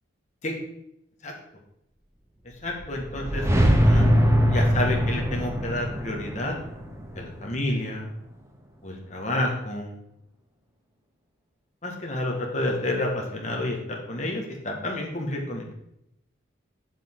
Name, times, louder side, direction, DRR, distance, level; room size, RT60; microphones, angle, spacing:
voice 1, 2.6-4.1 4.5-6.6 7.1-8.1 8.8-9.9 11.8-15.7, left 1 dB, 35° left, 0 dB, 1.5 m, -30 dB
impact-reverse-soft, 2.7-7.9, equal, 15° right, 0.8 m, -22 dB
7.6 x 7.4 x 3.7 m, 0.79 s
head